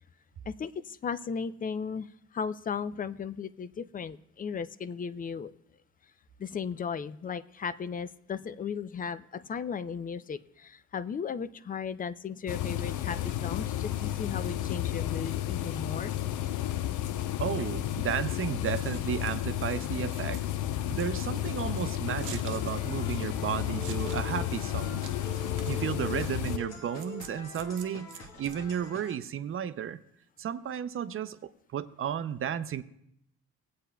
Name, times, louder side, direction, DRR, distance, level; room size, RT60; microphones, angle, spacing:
voice 1, 0.5-5.5 6.4-16.1, left 6 dB, 30° left, 14 dB, 0.4 m, -36 dB
sound 1, 12.5-26.6, left 12 dB, 80° left, 0.5 m, -32 dB
voice 2, 17.4-20.4 20.9-25.0 25.7-30.0 30.4-31.4 31.7-32.8, right 9 dB, 45° right, 13 dB, 0.5 m, -33 dB
Scissors, 18.6-29.1, right 9 dB, 80° right, 0.8 m, -49 dB
sound 2, 22.6-29.2, left 2 dB, 60° left, 1.4 m, -44 dB
18.5 x 8.5 x 2.2 m, 0.74 s
cardioid pair, 90°, 30 cm